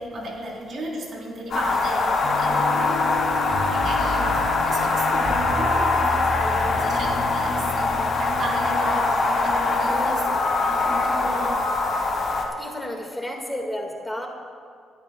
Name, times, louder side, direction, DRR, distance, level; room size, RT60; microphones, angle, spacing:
voice 1, 0.0-3.3 3.6-10.2 10.6-11.7, right 1 dB, 55° right, -2 dB, 3.5 m, -34 dB
sound 1, 1.5-12.4, left 3 dB, 55° left, 3.3 m, -23 dB
sound 2, 2.2-11.4, left 4 dB, 80° left, 2.4 m, -37 dB
sound 3, 3.4-8.6, left 1 dB, 30° right, 3.3 m, -34 dB
voice 2, 9.8-10.1 12.6-14.3, left 1 dB, 10° left, 1 dB, 1.7 m, -32 dB
27.0 x 13.0 x 2.2 m, 2.2 s
cardioid pair, 90°, 0 cm